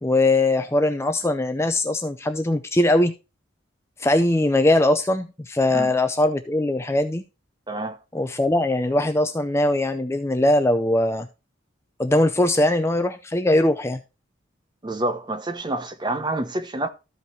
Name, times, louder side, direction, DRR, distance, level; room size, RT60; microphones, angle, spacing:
voice 1, 0.0-3.1 4.0-7.2 8.1-11.3 12.0-14.0, left 1 dB, 15° left, 0.5 m, -21 dB
voice 2, 7.7-8.0 14.8-16.9, right 2 dB, 20° right, 0.9 m, -27 dB
13.5 x 5.2 x 3.1 m
head